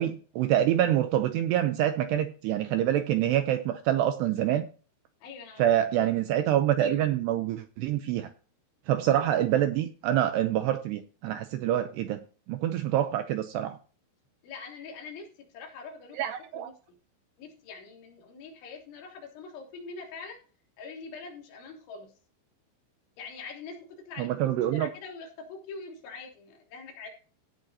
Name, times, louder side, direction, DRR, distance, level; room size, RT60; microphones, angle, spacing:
voice 1, 0.0-4.7 5.6-8.3 8.9-12.2 12.5-13.8 16.2-16.7 24.2-24.9, right 12 dB, 85° right, 8 dB, 2.4 m, -26 dB
voice 2, 5.2-5.6 14.4-16.2 16.5-17.0 17.4-20.4 20.8-22.1 23.2-23.8 24.1-27.1, left 4 dB, 70° left, 0 dB, 5.4 m, -44 dB
17.0 x 7.5 x 2.9 m, 0.37 s
omnidirectional pair, 5.7 m